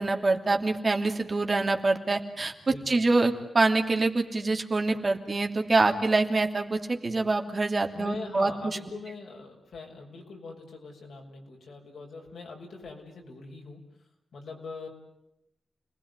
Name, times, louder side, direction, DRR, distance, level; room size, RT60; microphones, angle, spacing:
voice 1, 0.0-2.5 2.9-8.8, right 3 dB, 35° right, 4 dB, 2.9 m, -25 dB
voice 2, 2.7-3.0 7.9-13.8 14.3-14.9, left 3 dB, 80° left, 1 dB, 6.6 m, -42 dB
30.0 x 20.5 x 9.7 m, 0.84 s
wide cardioid pair, 110°, 0 cm